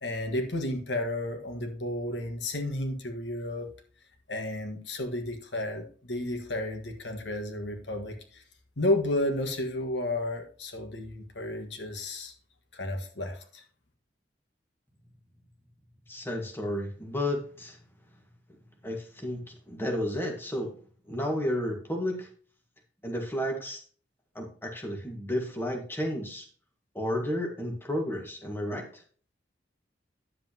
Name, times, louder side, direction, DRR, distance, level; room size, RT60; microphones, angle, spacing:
voice 1, 0.0-3.7 4.3-8.4 8.8-12.3 12.7-13.6, left 1 dB, 75° left, 1.6 m, -32 dB
voice 2, 16.1-17.8 18.8-20.8 21.1-22.3 23.0-23.8 24.4-26.5 27.0-29.0, left 1 dB, 10° left, 1.7 m, -32 dB
10.0 x 7.7 x 2.9 m
head